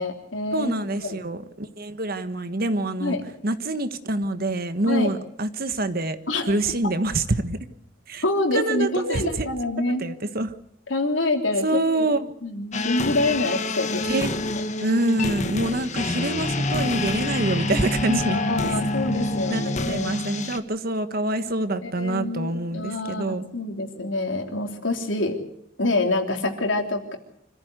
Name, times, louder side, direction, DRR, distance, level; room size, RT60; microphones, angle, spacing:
voice 1, 0.0-0.7 1.0-1.2 3.0-3.2 4.8-5.1 6.3-6.5 8.2-10.1 10.9-12.0 12.4-14.0 18.1-20.2 21.8-25.4 25.8-27.2, left 2 dB, 85° left, 3 dB, 3.5 m, -26 dB
voice 2, 0.5-3.2 3.4-6.2 6.5-7.6 8.1-8.2 8.5-9.5 10.0-10.5 11.6-12.3 14.1-14.4 14.8-18.4 19.5-23.4, right 2 dB, 50° right, 10 dB, 1.4 m, -26 dB
sound 1, 12.7-20.6, left 2 dB, 40° left, 1.5 m, -27 dB
26.0 x 15.0 x 8.1 m, 0.78 s
head